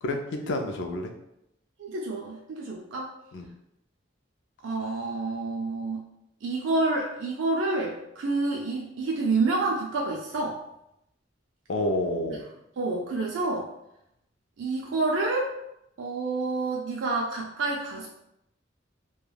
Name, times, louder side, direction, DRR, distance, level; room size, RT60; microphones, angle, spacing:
voice 1, 0.0-1.1 3.3-3.5 11.7-12.4, left 1 dB, 70° left, 4 dB, 0.4 m, -29 dB
voice 2, 1.8-3.1 4.6-6.1 6.4-10.6 12.8-13.7 14.6-15.5 16.0-18.1, right 3 dB, 80° right, -2 dB, 0.4 m, -28 dB
3.2 x 2.2 x 2.3 m, 0.83 s
head